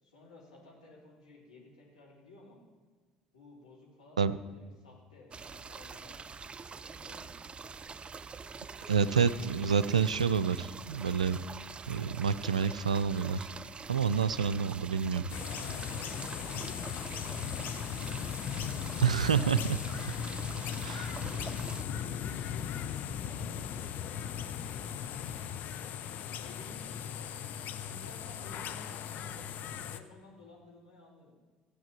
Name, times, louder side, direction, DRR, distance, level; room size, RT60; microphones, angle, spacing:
voice 1, 0.0-2.6 3.3-6.6 6.9-7.3 15.4-17.8 19.1-19.6 20.3-21.3 22.0-25.3 25.9-27.3 27.8-29.5 29.9-31.3, left 2 dB, 85° left, -4 dB, 3.6 m, -54 dB
sound 1, 5.3-21.8, right 5 dB, 30° right, 0.5 m, -45 dB
voice 2, 8.9-11.4 11.9-13.4 13.9-15.3 19.0-19.8 20.8-21.0, right 6 dB, 85° right, 15 dB, 0.4 m, -28 dB
sound 2, 15.3-30.0, left 8 dB, 55° left, 0.9 m, -38 dB
15.0 x 8.2 x 7.5 m, 1.4 s
figure-of-eight pair, 55°, 4 cm